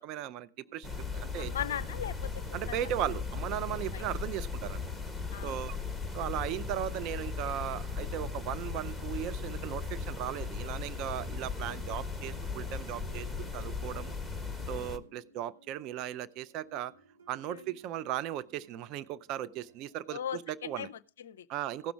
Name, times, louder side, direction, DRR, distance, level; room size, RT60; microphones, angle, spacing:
voice 1, 0.0-1.5 2.5-4.8 5.4-5.8 6.1-13.3 13.5-14.1 14.7-16.9 17.3-20.9 21.5-21.9, right 11 dB, 40° right, 0.5 m, -37 dB
sound 1, 0.5-20.4, right 4 dB, 80° right, 4.8 m, -60 dB
sound 2, 0.8-15.0, left 4 dB, ahead, 1.0 m, -37 dB
voice 2, 1.4-2.3 2.7-2.8 3.9-4.0 5.3-5.7 11.6-12.0 17.5-17.8 20.1-21.5, left 9 dB, 65° left, 0.4 m, -39 dB
16.5 x 6.0 x 4.5 m
figure-of-eight pair, 90°, 0 cm